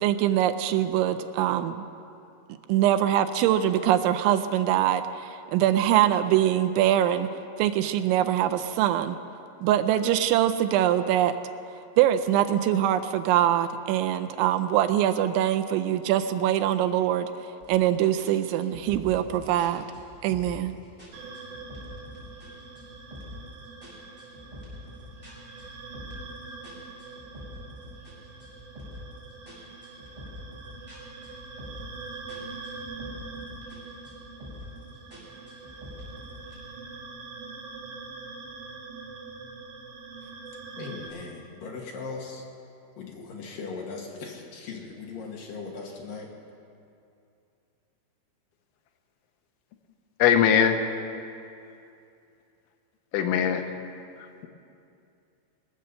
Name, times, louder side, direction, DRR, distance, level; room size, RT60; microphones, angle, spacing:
voice 1, 0.0-1.9 2.7-7.3 7.6-9.2 9.6-11.3 12.0-17.3 17.7-19.8 20.2-20.8, right 11 dB, 85° right, 8 dB, 2.8 m, -23 dB
sound 1, 17.6-17.8 18.2-20.7 21.0-22.5 22.7-23.5 23.8-26.3 26.6-29.1 29.5-32.0 32.3-33.8 34.0-34.8 35.1-36.5, left 1 dB, 10° right, 4.2 m, -45 dB
sound 2, 21.1-41.1, right 4 dB, 65° right, 4.1 m, -43 dB
voice 2, 40.8-42.4 43.0-46.3, left 4 dB, 65° left, -1 dB, 2.4 m, -39 dB
voice 3, 50.2-50.8 53.1-53.7, left 8 dB, 80° left, 5 dB, 3.2 m, -20 dB
22.5 x 7.6 x 6.7 m, 2.6 s
omnidirectional pair, 5.6 m